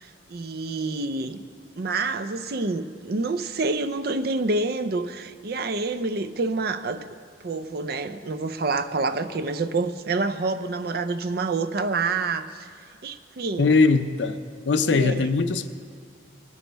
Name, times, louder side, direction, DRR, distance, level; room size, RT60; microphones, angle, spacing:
voice 1, 0.0-1.4 1.8-7.0 7.4-12.7 13.0-13.7 14.9-15.2, right 3 dB, 55° right, 11 dB, 0.5 m, -27 dB
voice 2, 13.6-14.4 14.7-15.7, left 4 dB, 75° left, 10 dB, 0.6 m, -20 dB
19.0 x 6.5 x 5.2 m, 2.2 s
head